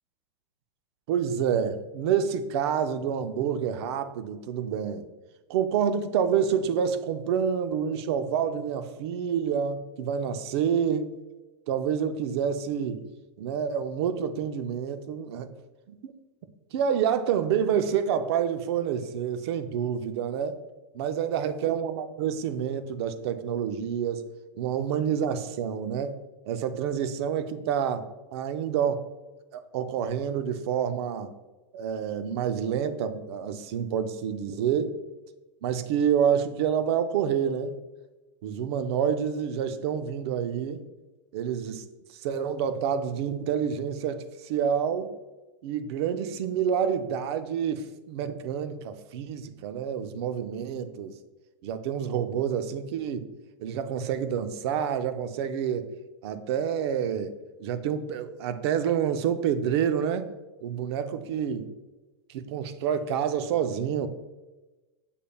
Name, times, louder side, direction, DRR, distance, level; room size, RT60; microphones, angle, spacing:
voice 1, 1.1-5.1 5.5-11.1 11.7-13.1 13.4-15.5 16.0-16.1 16.7-20.6 20.9-24.3 24.6-26.2 26.5-28.1 28.3-29.0 29.5-31.3 31.7-34.9 35.6-37.8 38.4-40.8 41.3-41.8 42.1-45.1 45.6-51.2 51.6-53.3 53.6-55.9 56.2-57.3 57.6-60.3 60.6-61.7 62.3-64.1, right 8 dB, 60° right, 11 dB, 0.5 m, -28 dB
6.8 x 3.3 x 2.3 m, 1.1 s
supercardioid pair, 130°, 15 cm